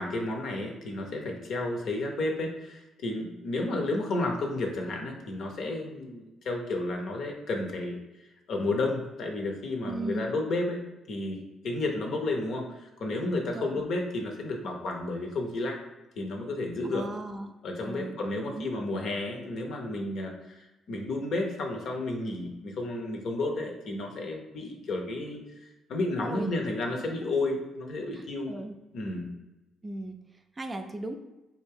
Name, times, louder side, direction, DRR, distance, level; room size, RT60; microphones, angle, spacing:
voice 1, 0.0-8.0 8.5-10.8 11.1-15.8 16.2-17.0 17.6-20.6 20.9-25.4 25.9-28.5 28.9-29.3, left 2 dB, 65° left, 2 dB, 0.7 m, -32 dB
voice 2, 9.8-10.3 13.5-13.8 16.8-17.5 17.8-18.1 18.5-18.7 26.2-26.5 28.1-28.7 29.8-30.2 30.6-31.2, right 2 dB, 30° right, 6 dB, 0.4 m, -37 dB
3.4 x 2.6 x 3.4 m, 1.0 s
hypercardioid pair, 50°, 0 cm